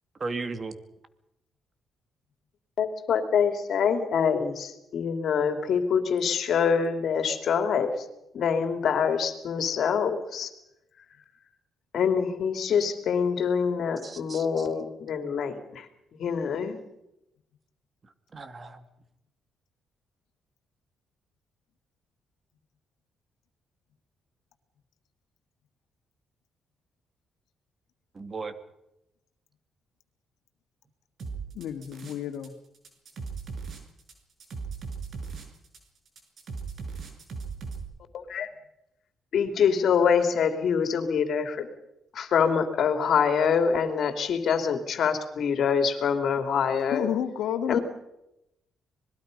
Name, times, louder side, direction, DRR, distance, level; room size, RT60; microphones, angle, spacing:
voice 1, 0.2-0.7 14.0-14.7 18.3-18.8 28.1-28.5, right 3 dB, 35° right, 10 dB, 2.3 m, -36 dB
voice 2, 2.8-7.9 8.3-10.5 11.9-15.8 16.1-16.8 38.1-38.5 39.3-41.7 42.1-47.1 47.7-47.8, left 6 dB, 65° left, 7 dB, 3.0 m, -25 dB
sound 1, 31.2-32.5 32.7-37.8, right 5 dB, 55° right, 5.4 m, -37 dB
voice 3, 31.5-32.5 46.9-47.8, left 9 dB, 80° left, 7 dB, 2.2 m, -30 dB
25.5 x 21.0 x 5.4 m, 0.86 s
cardioid pair, 90°, 0 cm